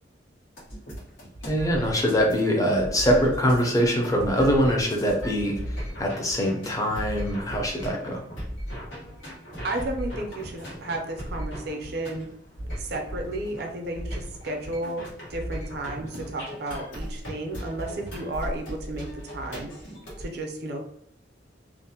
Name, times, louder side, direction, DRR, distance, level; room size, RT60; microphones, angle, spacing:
sound 1, 0.6-20.3, equal, 85° left, 1.1 m, -37 dB
voice 1, 1.5-8.2, equal, 20° left, 0 dB, 0.5 m, -23 dB
voice 2, 9.6-12.3 12.8-19.9 20.2-20.8, right 1 dB, 60° right, 2 dB, 0.5 m, -33 dB
2.5 x 2.0 x 2.7 m, 0.74 s
head